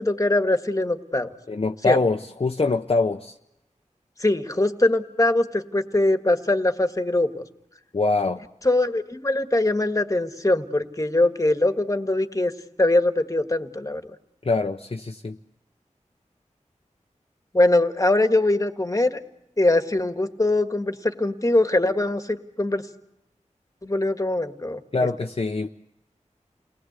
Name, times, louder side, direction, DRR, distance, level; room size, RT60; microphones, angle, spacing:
voice 1, 0.0-1.3 1.8-2.0 4.2-7.4 8.6-12.5 12.8-14.0 17.5-19.2 19.6-22.8 23.8-24.8, left 2 dB, 25° left, 9 dB, 1.7 m, -22 dB
voice 2, 1.5-3.3 7.9-8.4 14.4-15.4 24.9-25.7, left 3 dB, 45° left, 3 dB, 0.8 m, -24 dB
29.0 x 19.5 x 8.2 m, 0.87 s
wide cardioid pair, 80°, 13 cm